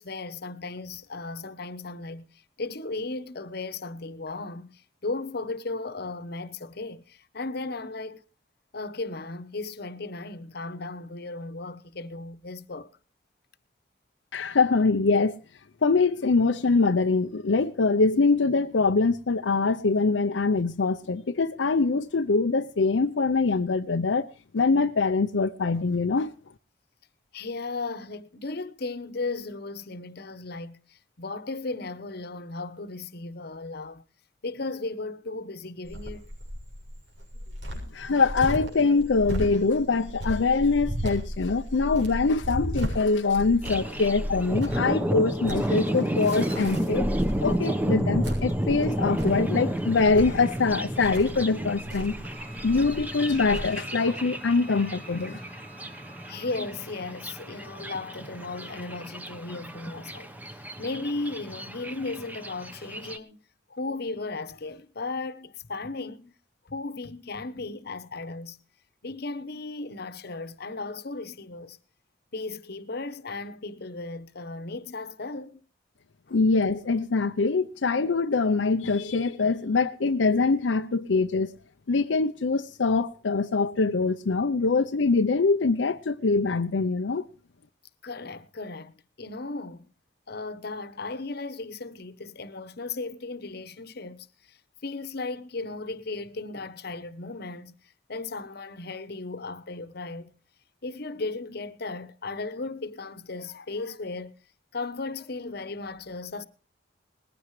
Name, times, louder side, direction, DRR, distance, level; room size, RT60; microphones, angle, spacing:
voice 1, 0.0-8.2 8.7-12.9 27.3-34.0 34.4-36.3 56.3-60.3 60.8-63.4 63.7-66.3 66.6-68.6 69.0-71.8 72.3-75.6 76.3-76.4 88.0-89.9 90.3-97.7 98.1-100.3 100.8-104.3 104.7-106.5, left 3 dB, 60° left, 1.0 m, -36 dB
voice 2, 14.3-15.4 15.8-24.3 24.5-26.3 37.9-47.1 47.4-52.2 52.6-55.4 76.3-81.5 81.9-87.2, left 4 dB, 85° left, 0.6 m, -24 dB
Cricket, 35.8-53.6, equal, 90° right, 6.7 m, -35 dB
Thunder, 43.6-63.2, equal, 10° right, 1.0 m, -31 dB
Wind instrument woodwind instrument, 52.3-56.6, right 1 dB, 35° right, 4.3 m, -49 dB
20.0 x 15.5 x 3.2 m
head